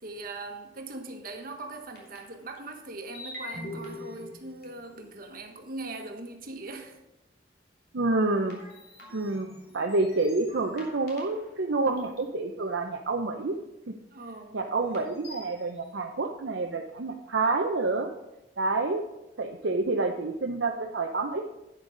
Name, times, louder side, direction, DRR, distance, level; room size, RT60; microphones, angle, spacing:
voice 1, 0.0-7.0 14.1-14.6, right 2 dB, 55° right, 4 dB, 1.4 m, -40 dB
sound 1, 1.3-1.4 2.0-2.6 3.1-5.1 5.9-6.0 8.5-11.6 12.0-12.3 13.5-13.6 14.8-15.7, left 2 dB, 60° left, 3.1 m, -44 dB
voice 2, 7.9-8.6 9.1-9.5 9.7-13.6 13.9-14.0 14.5-18.1 18.6-19.0 19.4-21.4, right 3 dB, 85° right, 2 dB, 0.7 m, -28 dB
11.0 x 8.9 x 3.9 m, 0.92 s
head